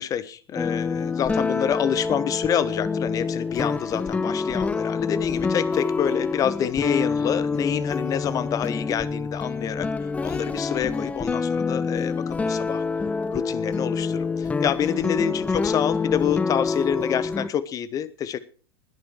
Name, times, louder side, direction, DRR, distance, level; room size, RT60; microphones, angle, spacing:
voice 1, 0.0-9.9 10.2-12.8 13.3-18.4, left 9 dB, 25° left, 17 dB, 1.1 m, -27 dB
sound 1, 0.6-17.5, left 4 dB, 10° left, 0.7 m, -26 dB
20.0 x 8.7 x 4.6 m, 0.39 s
figure-of-eight pair, 90°, 13 cm